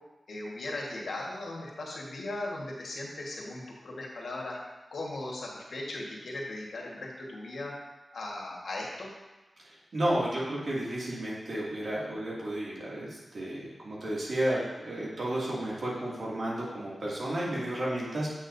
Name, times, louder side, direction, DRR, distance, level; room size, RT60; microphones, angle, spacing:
voice 1, 0.3-4.6 4.9-7.7 8.1-9.1, left 2 dB, 80° left, -3 dB, 1.5 m, -38 dB
voice 2, 9.6-18.3, right 1 dB, 70° right, -6 dB, 2.3 m, -32 dB
8.5 x 6.2 x 2.7 m, 1.1 s
cardioid pair, 50°, 0 cm